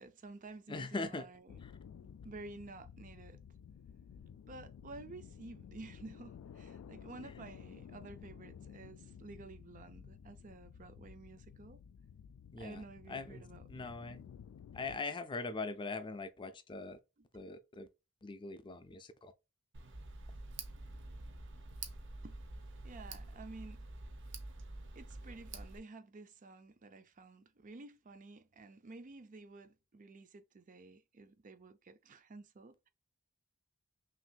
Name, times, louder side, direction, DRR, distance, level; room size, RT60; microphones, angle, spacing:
voice 1, 0.0-1.5 2.2-3.4 4.5-11.8 12.6-13.9 17.2-17.3 22.2-22.4 22.8-23.8 25.0-32.9, right 3 dB, 40° right, 0.5 m, -52 dB
voice 2, 0.7-1.3 1.6-1.7 12.5-12.8 13.1-14.2 14.7-17.0 17.3-17.9 18.2-19.3, left 3 dB, 25° left, 0.4 m, -41 dB
sound 1, 1.5-15.0, left 7 dB, 85° left, 0.3 m, -53 dB
Tick, 19.7-25.8, right 3 dB, 60° right, 0.8 m, -47 dB
5.9 x 2.6 x 2.3 m
head